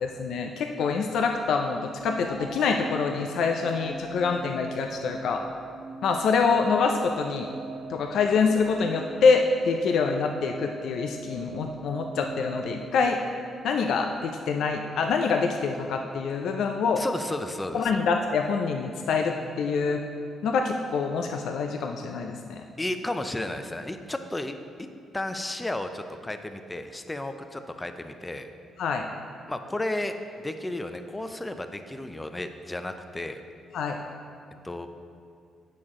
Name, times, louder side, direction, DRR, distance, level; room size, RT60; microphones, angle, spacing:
voice 1, 0.0-5.4 6.0-7.5 7.9-13.2 13.6-17.0 17.7-20.0 20.4-22.6 28.8-29.1 33.7-34.0, left 5 dB, 75° left, 3 dB, 0.4 m, -25 dB
sound 1, 2.0-14.1, right 3 dB, 60° right, 0.6 m, -41 dB
voice 2, 17.0-18.0 22.8-24.5 24.8-28.5 29.5-33.4 34.6-34.9, left 1 dB, 15° left, 8 dB, 0.5 m, -33 dB
8.3 x 6.2 x 3.7 m, 2.4 s
cardioid pair, 90°, 0 cm